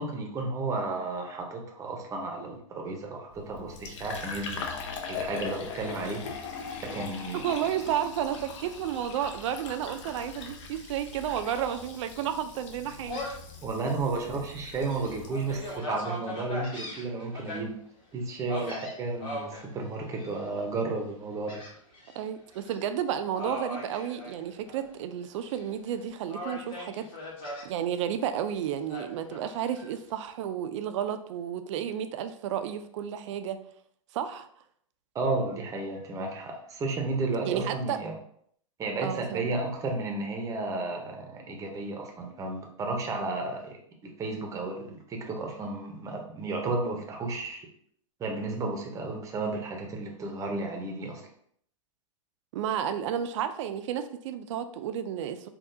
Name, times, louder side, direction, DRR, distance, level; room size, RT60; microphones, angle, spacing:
voice 1, 0.0-4.6 5.1-6.3 6.9-7.4 13.6-17.7 18.1-21.6 35.1-38.1 38.8-43.8 44.0-47.7 48.2-51.3, right 3 dB, 20° right, 2 dB, 0.6 m, -33 dB
Fill (with liquid), 3.3-15.8, left 5 dB, 60° left, 0.6 m, -41 dB
voice 2, 7.3-13.2 22.2-27.1 27.6-33.6 34.1-34.5 37.4-38.0 39.0-39.4 52.5-55.5, right 9 dB, 60° right, 10 dB, 0.4 m, -32 dB
Gull seagull, 13.1-13.5 14.0-14.1 14.6-17.6 18.5-19.6 20.2-20.6 21.5-22.2 22.5-22.8 23.3-24.9 25.2-25.9 26.3-27.7 28.9-29.9, left 1 dB, 30° left, 1.1 m, -39 dB
3.6 x 2.3 x 2.6 m, 0.65 s
hypercardioid pair, 125°, 17 cm